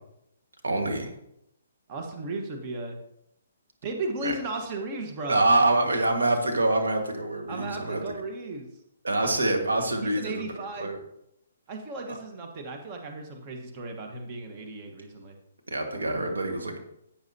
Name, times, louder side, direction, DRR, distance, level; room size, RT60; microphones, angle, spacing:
voice 1, 0.6-1.1 4.2-4.3 5.3-8.0 9.0-10.4 10.8-11.0 12.1-12.2 15.7-16.8, right 2 dB, 85° right, 2 dB, 1.7 m, -25 dB
voice 2, 1.9-3.0 3.8-5.4 7.5-8.7 9.2-9.6 10.0-10.9 11.7-15.3, right 2 dB, 35° right, 3 dB, 1.3 m, -35 dB
10.5 x 8.9 x 2.8 m, 0.80 s
hypercardioid pair, 140°, 0 cm